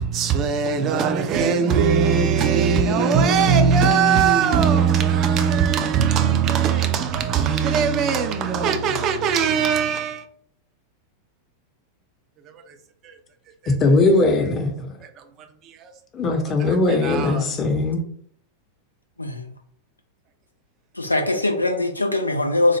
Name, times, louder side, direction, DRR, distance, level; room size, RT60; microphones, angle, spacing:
voice 1, 0.0-10.2 12.4-12.8 13.0-13.2 13.6-13.7 15.0-15.9 16.6-17.9, right 6 dB, 35° right, 0.5 m, -20 dB
voice 2, 13.8-14.9 16.1-18.0, left 2 dB, 30° left, 0.7 m, -19 dB
voice 3, 19.2-19.5 20.9-22.8, left 2 dB, 85° left, 0.4 m, -22 dB
4.0 x 2.0 x 3.2 m
figure-of-eight pair, 90°, 0 cm